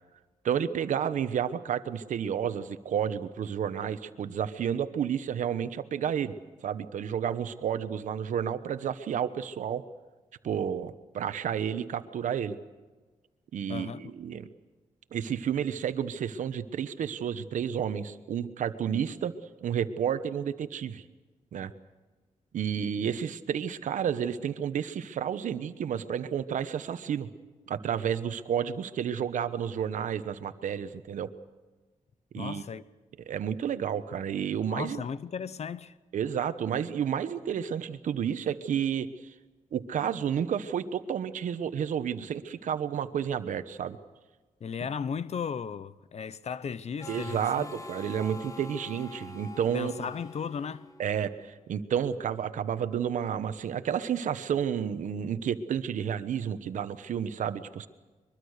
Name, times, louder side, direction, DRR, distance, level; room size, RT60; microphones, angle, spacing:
voice 1, 0.4-6.3 6.6-9.8 10.4-12.6 13.5-14.5 15.1-19.3 19.6-21.0 21.5-21.7 22.5-27.3 27.7-31.3 32.3-32.6 33.3-35.0 36.1-39.3 39.7-44.0 47.1-50.1 51.0-57.9, right 8 dB, 85° right, 1.1 m, -31 dB
voice 2, 13.7-14.1 32.3-32.8 34.7-36.0 44.6-47.7 49.7-50.9, left 6 dB, 60° left, 0.9 m, -36 dB
Harmonica, 47.0-51.5, left 3 dB, 25° left, 1.7 m, -45 dB
23.0 x 23.0 x 6.6 m
cardioid pair, 85°, 13 cm